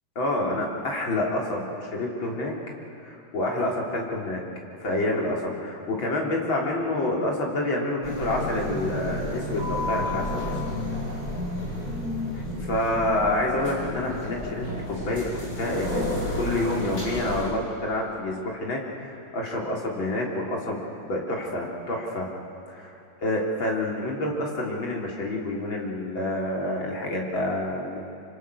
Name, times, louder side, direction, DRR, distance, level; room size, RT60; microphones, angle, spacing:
voice 1, 0.2-2.5 3.0-4.4 4.8-10.5 12.3-15.3 15.6-16.1 16.4-22.3 22.7-28.0, left 1 dB, 65° left, -1 dB, 4.3 m, -28 dB
sound 1, 8.0-17.5, left 1 dB, 40° left, 6.1 m, -31 dB
25.5 x 25.0 x 6.5 m, 2.9 s
omnidirectional pair, 2.4 m